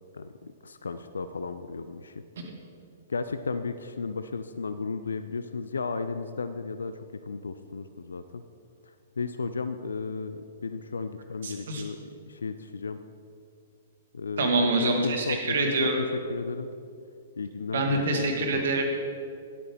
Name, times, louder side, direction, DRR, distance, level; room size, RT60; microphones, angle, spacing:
voice 1, 0.1-2.2 3.1-8.4 8.8-12.0 12.3-13.0 14.1-14.5 14.8-15.6 15.8-16.7 17.4-18.1 18.5-18.7, left 4 dB, 75° left, 11 dB, 0.3 m, -34 dB
voice 2, 11.4-11.8 14.4-16.0 17.7-18.8, right 2 dB, 60° right, 2 dB, 1.3 m, -26 dB
10.0 x 8.2 x 3.4 m, 2.4 s
figure-of-eight pair, 115°, 0 cm